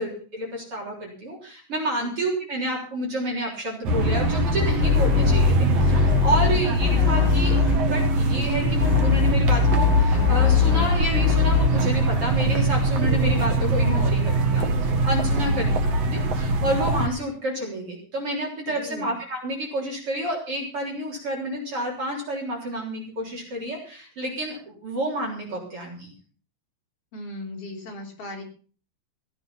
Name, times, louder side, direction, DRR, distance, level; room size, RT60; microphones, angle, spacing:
voice 1, 0.0-26.1, right 1 dB, 30° right, -2 dB, 4.3 m, -29 dB
sound 1, 3.8-17.1, right 2 dB, 60° right, 1.7 m, -22 dB
sound 2, 4.8-5.5 5.8-7.8 8.8-10.9 11.1-11.7, left 10 dB, 90° left, 3.5 m, -21 dB
voice 2, 6.3-6.6 15.3-15.8 18.7-19.1 27.1-28.4, left 1 dB, 35° left, 0 dB, 4.0 m, -37 dB
17.0 x 9.8 x 5.8 m, 0.41 s
omnidirectional pair, 5.1 m